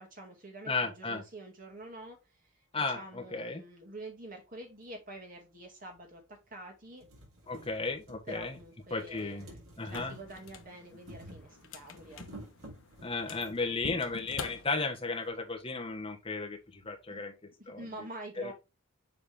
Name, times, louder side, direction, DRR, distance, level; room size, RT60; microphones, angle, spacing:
voice 1, 0.0-2.2 2.9-7.0 8.3-12.2 17.1-17.2 17.6-18.5, right 2 dB, 40° right, 2.4 m, -47 dB
voice 2, 0.7-1.2 2.7-3.6 7.5-8.6 8.9-9.5 9.8-10.2 13.0-17.3 17.7-17.8 18.4-18.5, left 3 dB, 25° left, 1.3 m, -34 dB
sound 1, 4.8-4.9 5.9-6.0 6.4-6.5 6.8-14.4 15.3-15.4 15.7-15.8, right 1 dB, 85° right, 3.9 m, -52 dB
sound 2, 9.8-15.3, left 4 dB, 70° left, 1.1 m, -47 dB
7.5 x 4.3 x 3.5 m
head